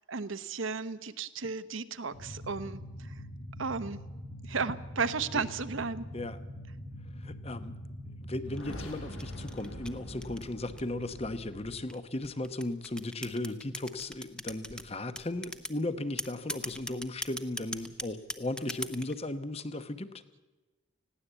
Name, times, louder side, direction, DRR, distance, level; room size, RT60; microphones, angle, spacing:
voice 1, 0.0-3.1 3.6-4.0 4.4-6.0, right 4 dB, 70° right, 13 dB, 1.0 m, -34 dB
sound 1, 2.1-11.8, equal, 70° left, 4.7 m, -43 dB
voice 2, 7.2-7.8 8.2-20.2, left 2 dB, 30° left, 11 dB, 0.9 m, -36 dB
sound 2, 8.6-11.0 11.7-14.8 15.2-15.8 16.2-19.2, left 1 dB, 5° left, 0.8 m, -39 dB
20.0 x 16.0 x 8.1 m, 1.2 s
head